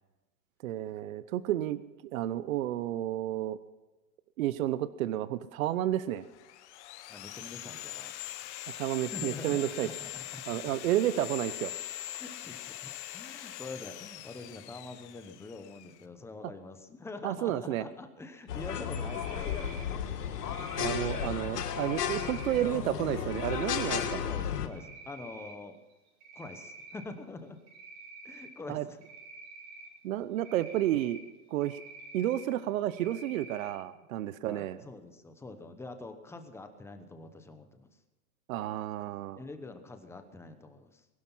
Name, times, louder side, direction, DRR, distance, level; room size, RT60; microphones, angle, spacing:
voice 1, 0.6-3.6 4.4-6.2 8.8-9.9 10.5-11.7 17.2-17.8 20.8-24.2 28.7-28.8 30.0-31.2 31.5-31.8 32.1-34.8 38.5-39.4, right 13 dB, 60° right, 15 dB, 0.9 m, -31 dB
Sawing, 6.2-16.0, left 14 dB, 45° left, 1.1 m, -42 dB
voice 2, 7.1-8.1 9.0-10.7 12.1-19.9 23.9-25.8 26.3-27.6 28.2-29.0 34.4-38.0 39.3-41.1, left 3 dB, 5° left, 8 dB, 0.9 m, -45 dB
sound 1, 18.5-24.7, left 8 dB, 80° left, 1.9 m, -33 dB
Cricket, 19.0-19.9 20.4-21.3 21.7-22.6 23.3-24.1 24.6-25.5 25.9-27.1 27.7-28.5 29.0-29.9 30.4-31.2 31.6-32.4 32.9-33.7, right 3 dB, 35° right, 4.2 m, -48 dB
20.5 x 12.0 x 5.6 m, 1.1 s
hypercardioid pair, 150°, 46 cm